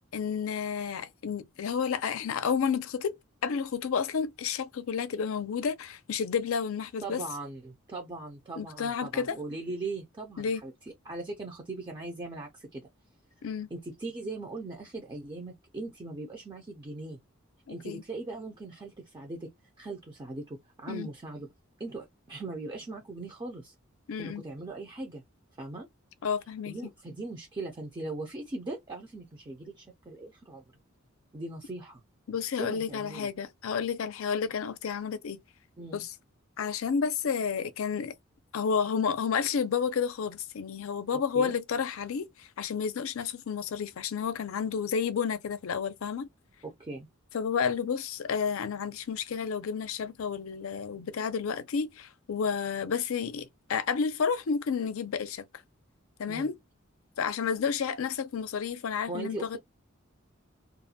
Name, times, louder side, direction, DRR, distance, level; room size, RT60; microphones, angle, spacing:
voice 1, 0.1-3.1 3.4-7.2 8.6-9.4 10.4-10.6 13.4-13.7 17.7-18.0 20.9-21.1 24.1-24.4 26.2-26.7 32.3-35.4 35.9-36.1 36.6-38.1 38.5-46.3 47.3-55.4 56.2-56.6 57.2-59.6, left 6 dB, 75° left, 0.4 m, -31 dB
voice 2, 7.0-10.7 11.0-12.9 13.7-17.2 17.7-19.5 19.8-21.5 21.8-23.8 24.2-25.2 25.6-25.9 26.7-30.6 31.3-32.0 32.6-33.3 35.8-36.0 41.1-41.5 46.6-47.1 56.3-56.5 59.1-59.6, right 2 dB, 20° right, 0.5 m, -39 dB
2.4 x 2.1 x 2.7 m
head